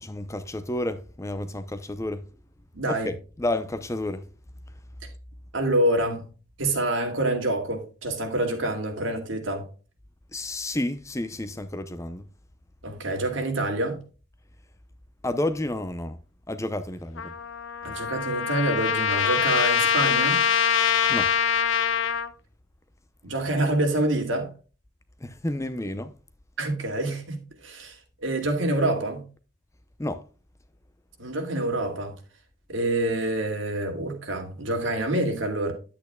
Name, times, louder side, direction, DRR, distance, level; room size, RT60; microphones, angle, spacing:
voice 1, 0.0-2.2 2.9-4.3 10.3-12.2 15.2-16.2 16.5-17.3 21.1-21.3 25.2-26.1 30.0-30.2, left 1 dB, 15° left, 0.6 m, -30 dB
voice 2, 2.7-3.1 5.5-6.2 6.6-9.7 12.8-14.0 17.8-20.4 23.2-24.5 26.6-29.2 31.2-32.1 32.7-35.7, right 1 dB, 70° right, 2.3 m, -26 dB
Trumpet, 17.2-22.3, left 8 dB, 70° left, 0.7 m, -24 dB
10.5 x 8.6 x 2.2 m
head